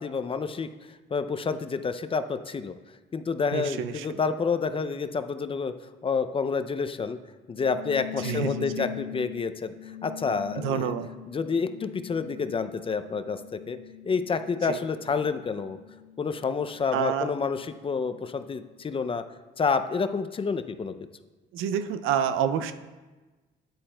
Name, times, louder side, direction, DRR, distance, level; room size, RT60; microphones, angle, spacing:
voice 1, 0.0-2.7 3.1-5.7 6.0-7.2 7.5-9.7 10.0-10.9 11.3-13.8 14.0-15.8 16.2-19.2 19.6-20.9, left 5 dB, 25° left, 10 dB, 0.4 m, -29 dB
voice 2, 3.5-4.2 8.2-8.9 10.6-11.1 14.7-14.8 16.9-17.3 21.5-22.7, right 8 dB, 90° right, 10 dB, 0.4 m, -28 dB
sound 1, 7.6-18.5, left 12 dB, 90° left, 0.4 m, -42 dB
9.2 x 8.5 x 2.2 m, 1.2 s
cardioid pair, 90°, 20 cm